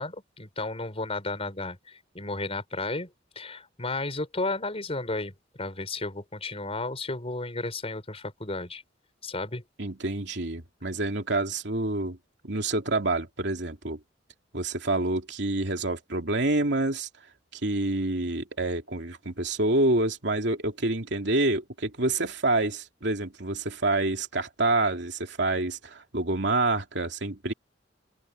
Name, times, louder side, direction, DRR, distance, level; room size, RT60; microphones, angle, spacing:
voice 1, 0.0-3.1 3.3-5.3 5.6-8.8 9.2-9.6, left 2 dB, 35° left, 4.8 m, -33 dB
voice 2, 9.8-12.2 12.4-14.0 14.5-17.1 17.6-27.5, right 2 dB, 65° right, 3.1 m, -27 dB
head